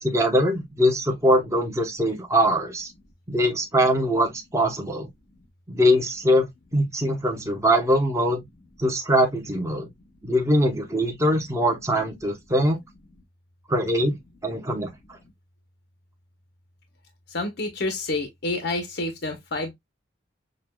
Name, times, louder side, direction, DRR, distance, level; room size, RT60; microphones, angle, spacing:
voice 1, 0.0-2.9 3.3-5.1 5.7-8.4 8.8-9.9 10.2-12.8 13.7-14.9, equal, 15° right, 1.0 m, -22 dB
voice 2, 17.3-19.7, left 2 dB, 55° left, 0.9 m, -28 dB
6.5 x 2.5 x 2.2 m
head